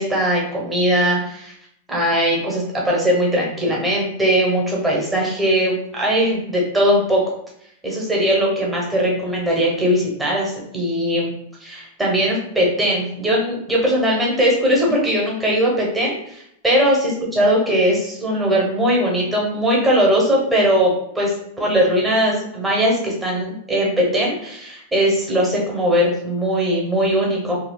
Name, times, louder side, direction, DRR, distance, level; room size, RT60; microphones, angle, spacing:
voice 1, 0.0-1.5 1.9-7.2 7.8-11.3 11.6-21.3 21.6-27.6, equal, 10° right, -3 dB, 1.0 m, -19 dB
3.6 x 2.2 x 2.3 m, 0.73 s
hypercardioid pair, 125°, 0 cm